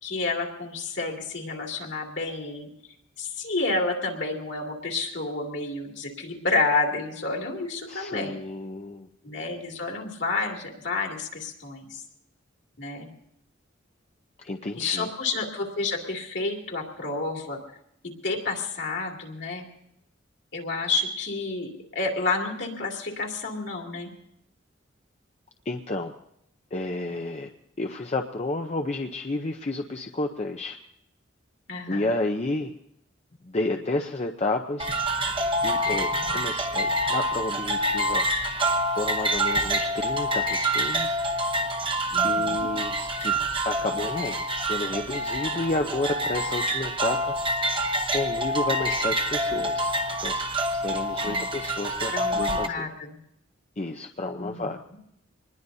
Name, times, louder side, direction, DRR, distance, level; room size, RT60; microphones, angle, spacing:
voice 1, 0.0-2.7 3.2-8.4 9.2-12.0 12.8-13.1 14.8-17.6 18.2-19.6 20.5-24.1 31.7-32.1 42.1-42.7 51.2-51.5 52.1-53.2 54.4-54.7, left 3 dB, 65° left, 0 dB, 2.7 m, -30 dB
voice 2, 7.9-9.1 14.4-15.1 25.7-26.1 26.7-27.5 27.8-30.8 31.9-32.7 33.4-34.9 35.6-38.3 38.9-41.2 42.2-43.4 43.6-47.3 48.1-49.9 50.2-50.4 50.7-52.9 53.8-54.8, left 2 dB, 35° left, 4 dB, 0.7 m, -31 dB
sound 1, 34.8-52.7, right 1 dB, 25° right, 1.0 m, -26 dB
25.0 x 20.5 x 2.7 m, 0.77 s
head